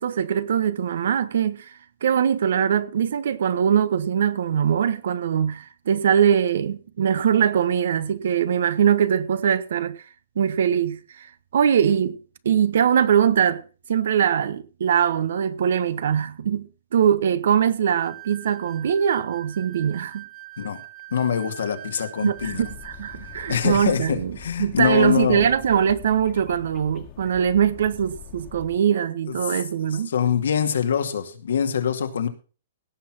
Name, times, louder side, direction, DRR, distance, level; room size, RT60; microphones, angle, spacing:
voice 1, 0.0-1.7 2.0-10.0 10.4-11.3 11.5-12.2 12.4-13.6 13.9-20.3 22.2-30.1, right 8 dB, 70° right, 1.2 m, -22 dB
sound 1, 18.0-24.1, right 17 dB, 25° right, 0.9 m, -43 dB
voice 2, 21.1-22.6 23.5-25.4 29.4-29.5 30.1-32.3, left 8 dB, 85° left, 2.3 m, -24 dB
sound 2, 22.4-28.8, left 8 dB, 30° left, 1.6 m, -43 dB
17.0 x 6.0 x 6.1 m
hypercardioid pair, 155°, 0 cm